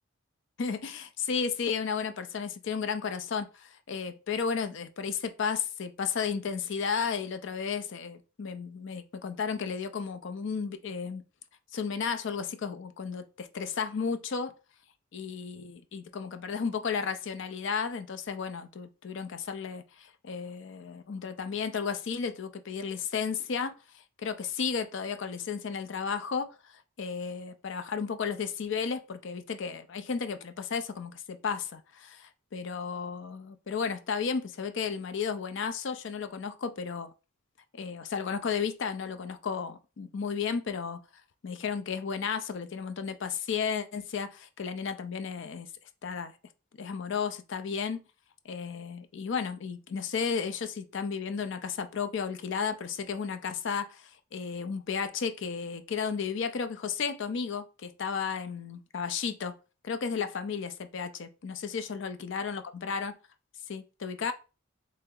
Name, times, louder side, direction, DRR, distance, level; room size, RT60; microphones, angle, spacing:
voice 1, 0.6-11.2 11.7-14.5 15.1-37.1 37.7-41.0 41.4-45.7 46.0-46.3 46.8-48.0 48.4-59.6 59.8-63.1 63.7-64.3, left 6 dB, 65° left, 0.5 m, -33 dB
3.2 x 2.8 x 3.7 m
head